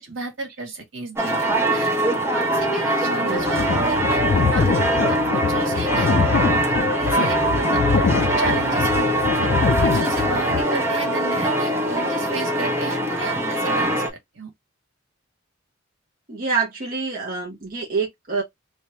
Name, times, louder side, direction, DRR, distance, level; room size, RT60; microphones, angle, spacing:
voice 1, 0.0-4.2 4.5-6.6 7.0-9.1 9.4-14.0 14.3-14.5, right 2 dB, 70° right, 1.7 m, -33 dB
sound 1, 1.2-14.1, right 1 dB, 15° right, 1.1 m, -22 dB
voice 2, 3.2-3.9 16.3-18.4, right 4 dB, 45° right, 1.1 m, -27 dB
sound 2, 3.4-10.6, left 5 dB, 50° left, 0.4 m, -24 dB
3.4 x 3.1 x 2.7 m
head